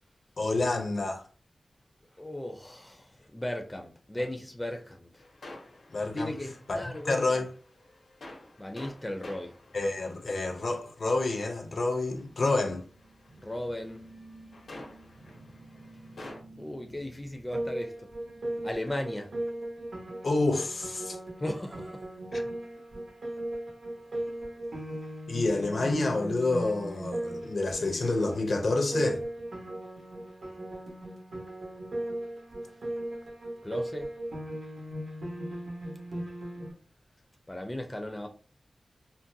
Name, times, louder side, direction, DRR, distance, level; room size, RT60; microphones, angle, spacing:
voice 1, 0.4-1.2 5.9-6.4 6.7-7.5 9.7-12.8 20.2-21.2 22.3-22.4 25.3-29.2, left 2 dB, 60° left, 0.6 m, -28 dB
voice 2, 2.2-5.1 6.1-7.4 8.6-9.6 13.4-14.0 16.6-18.1 18.6-19.3 21.4-22.0 33.6-34.1 37.5-38.3, left 1 dB, 15° left, 0.4 m, -36 dB
sound 1, 5.2-16.4, left 2 dB, 85° left, 0.9 m, -50 dB
sound 2, 12.3-20.0, right 2 dB, 50° right, 0.7 m, -54 dB
Piano, 17.5-36.7, right 1 dB, 85° right, 1.2 m, -37 dB
3.8 x 2.1 x 2.6 m
wide cardioid pair, 120°, 0 cm